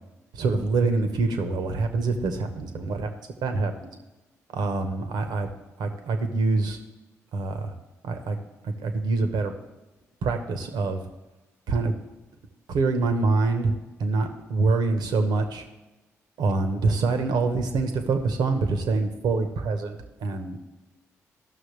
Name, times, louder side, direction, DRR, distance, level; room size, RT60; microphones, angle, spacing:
voice 1, 0.3-3.1 3.4-3.9 4.5-6.8 7.3-7.7 8.0-8.4 8.6-9.5 10.2-11.0 11.7-11.9 12.7-13.7 14.0-15.6 16.4-20.6, right 3 dB, 70° right, 6 dB, 1.1 m, -25 dB
15.0 x 6.2 x 3.3 m, 1.1 s
hypercardioid pair, 40°, 7 cm